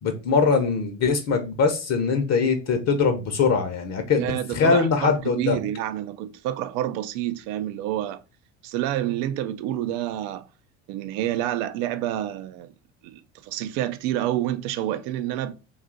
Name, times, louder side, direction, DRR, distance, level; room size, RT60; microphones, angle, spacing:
voice 1, 0.0-5.6, left 5 dB, 40° left, 0.7 m, -22 dB
voice 2, 4.2-8.2 8.6-10.5 10.9-12.7 13.0-15.5, right 12 dB, 65° right, 0.5 m, -28 dB
2.6 x 2.4 x 3.7 m
hypercardioid pair, 75°, 39 cm